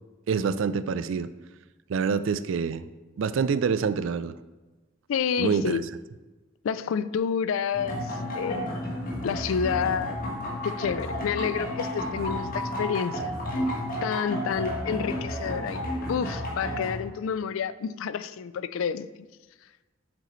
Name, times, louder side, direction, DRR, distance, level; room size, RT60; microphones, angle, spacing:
voice 1, 0.3-1.3 1.9-2.9 3.2-4.3 5.4-5.8, right 6 dB, 65° right, 13 dB, 0.3 m, -26 dB
voice 2, 5.1-5.9 6.6-8.8 9.2-10.2 10.6-13.3 14.0-19.1, left 7 dB, 75° left, 15 dB, 0.3 m, -29 dB
sound 1, 7.7-16.9, equal, 45° left, 1.4 m, -32 dB
7.9 x 6.8 x 3.1 m, 1.2 s
head